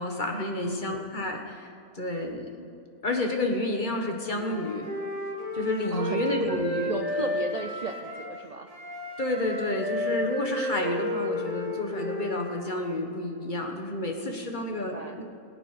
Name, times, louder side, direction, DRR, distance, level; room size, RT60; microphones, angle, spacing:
voice 1, 0.0-2.7 3.0-4.9 5.5-6.9 9.2-15.2, left 1 dB, 35° left, 3 dB, 1.4 m, -30 dB
voice 2, 0.6-1.1 5.9-6.5 6.9-8.7 14.7-15.2, right 4 dB, 65° right, 5 dB, 0.4 m, -36 dB
Wind instrument woodwind instrument, 4.3-8.3 8.7-12.9, left 1 dB, 25° right, 1.8 m, -33 dB
20.5 x 8.9 x 5.0 m, 2.6 s
omnidirectional pair, 1.6 m